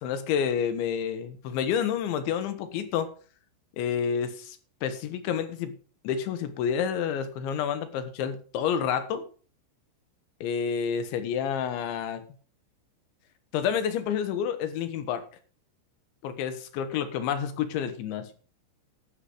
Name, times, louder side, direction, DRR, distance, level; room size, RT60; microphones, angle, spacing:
voice 1, 0.0-3.1 3.8-5.7 6.1-9.3 10.4-12.2 13.5-15.2 16.2-18.3, left 8 dB, 75° left, 11 dB, 3.4 m, -29 dB
12.5 x 10.5 x 5.0 m, 0.40 s
omnidirectional pair, 5.6 m